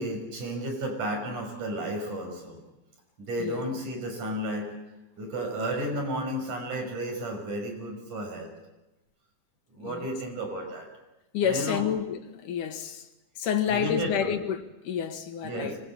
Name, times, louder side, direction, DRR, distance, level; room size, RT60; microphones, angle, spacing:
voice 1, 0.0-2.6 3.2-4.7 5.2-8.5 9.7-10.9 11.4-11.9 13.7-14.3 15.4-15.8, right 1 dB, 80° right, 7.7 m, -33 dB
voice 2, 11.3-13.1 13.4-15.8, left 8 dB, 90° left, 3.3 m, -29 dB
24.5 x 21.0 x 8.8 m
omnidirectional pair, 3.5 m